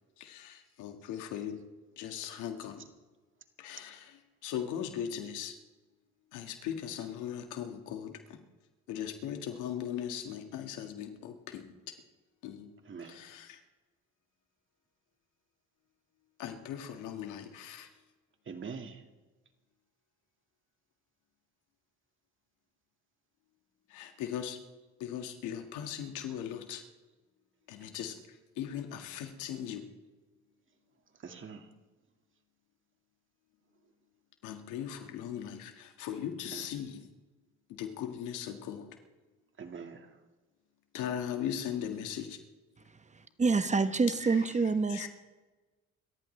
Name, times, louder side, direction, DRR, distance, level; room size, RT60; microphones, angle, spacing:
voice 1, 0.2-1.6 2.0-2.9 3.6-5.6 6.3-8.4 8.9-12.0 12.4-12.7 13.0-13.6 16.4-17.9 23.9-24.6 25.0-26.8 27.7-29.9 34.4-37.1 37.7-38.9 40.9-42.4 44.9-45.1, left 9 dB, 85° left, 1.9 m, -39 dB
voice 2, 12.9-13.2 18.5-19.0 31.2-31.7 36.5-36.7 39.6-40.2, right 5 dB, 40° right, 2.1 m, -44 dB
voice 3, 43.1-45.1, right 4 dB, 25° right, 1.0 m, -27 dB
27.5 x 14.0 x 3.3 m
supercardioid pair, 85°, 30 cm